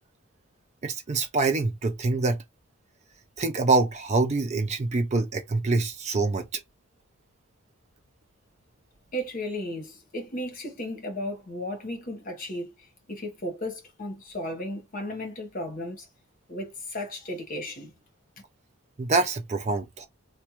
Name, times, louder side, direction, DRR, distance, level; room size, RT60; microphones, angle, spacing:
voice 1, 0.8-2.4 3.4-6.6 19.0-20.1, right 3 dB, 30° right, 0.4 m, -25 dB
voice 2, 9.1-12.7 13.1-16.1 16.5-17.9, left 1 dB, 40° left, 1.1 m, -34 dB
3.5 x 2.2 x 2.9 m
head